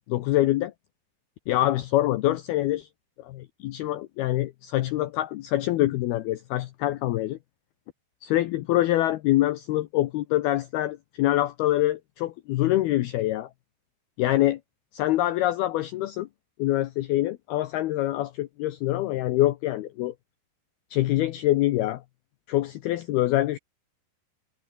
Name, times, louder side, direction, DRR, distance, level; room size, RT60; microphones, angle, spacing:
voice 1, 0.1-0.7 1.5-2.9 3.2-7.4 8.2-13.5 14.2-14.6 14.9-16.3 16.6-20.1 20.9-22.0 22.5-23.6, left 15 dB, 90° left, 2.2 m, -25 dB
omnidirectional pair, 5.6 m